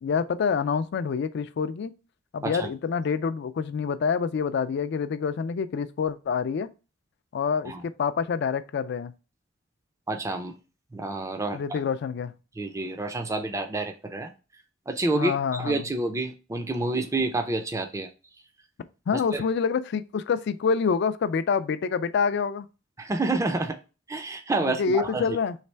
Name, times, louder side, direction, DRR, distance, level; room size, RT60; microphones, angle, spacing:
voice 1, 0.0-1.9 2.3-6.7 7.3-9.1 11.5-12.3 15.1-15.9 19.1-22.7 24.6-25.6, left 6 dB, 55° left, 0.3 m, -27 dB
voice 2, 10.1-10.5 10.9-11.8 12.6-14.3 14.9-18.1 19.1-19.4 23.0-23.8 24.1-25.4, right 2 dB, 15° right, 0.4 m, -29 dB
3.3 x 3.2 x 4.3 m
head